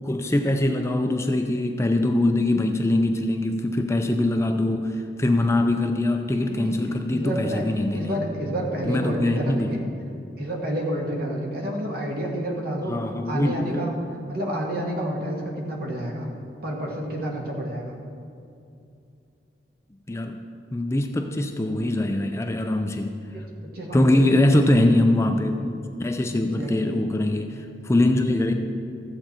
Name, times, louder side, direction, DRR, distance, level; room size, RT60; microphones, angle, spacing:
voice 1, 0.0-8.2 8.8-9.8 12.9-13.9 20.1-20.4 20.7-23.1 23.9-28.5, left 1 dB, 15° left, 5 dB, 0.4 m, -23 dB
voice 2, 7.1-7.6 7.9-9.8 10.4-12.9 13.2-13.9 14.3-16.3 16.6-17.9 23.3-23.4 23.7-24.4 26.3-27.0, right 1 dB, 55° right, -1 dB, 1.7 m, -29 dB
14.0 x 7.8 x 4.4 m, 2.6 s
head